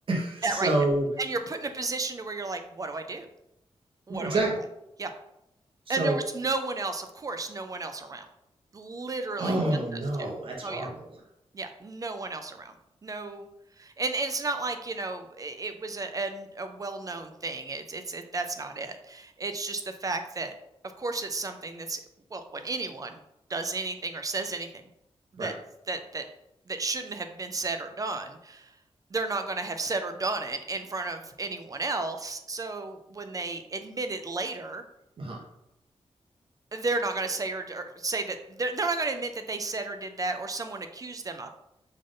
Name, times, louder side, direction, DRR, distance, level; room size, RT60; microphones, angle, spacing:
voice 1, 0.1-1.1 4.1-4.6 5.9-6.2 9.4-11.2 25.4-25.5 35.2-35.4, right 2 dB, 55° right, -1 dB, 0.9 m, -28 dB
voice 2, 1.2-3.3 4.1-4.4 5.0-5.1 5.9-8.3 8.7-9.5 9.9-10.0 10.6-10.9 11.5-12.7 13.0-13.5 13.8-20.5 21.0-22.0 22.3-23.2 23.5-24.7 25.4-25.5 25.9-26.2 26.7-28.7 29.1-34.8 36.7-41.5, right 3 dB, 30° right, 7 dB, 0.3 m, -33 dB
3.6 x 2.5 x 3.6 m, 0.83 s
wide cardioid pair, 110°, 11 cm